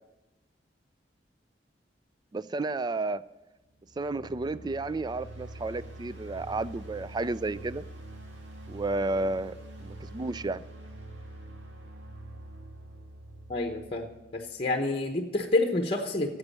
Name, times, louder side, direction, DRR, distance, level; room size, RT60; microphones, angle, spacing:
voice 1, 2.3-3.2 4.0-7.9 8.7-10.6, right 2 dB, 25° right, 0.4 m, -32 dB
sound 1, 3.8-14.8, right 1 dB, 85° right, 2.3 m, -45 dB
voice 2, 13.5-14.1 14.3-16.4, left 2 dB, 30° left, 1.0 m, -28 dB
10.5 x 8.1 x 8.3 m
head